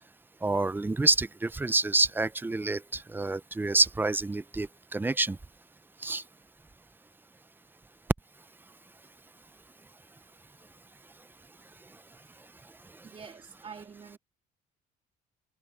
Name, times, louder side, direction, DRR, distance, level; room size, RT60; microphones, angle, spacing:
voice 1, 0.4-2.8 3.1-4.7 4.9-5.4 6.0-6.2, right 3 dB, 10° right, 0.6 m, -27 dB
voice 2, 13.0-14.2, right 6 dB, 35° right, 2.9 m, -46 dB
cardioid pair, 110°, 17 cm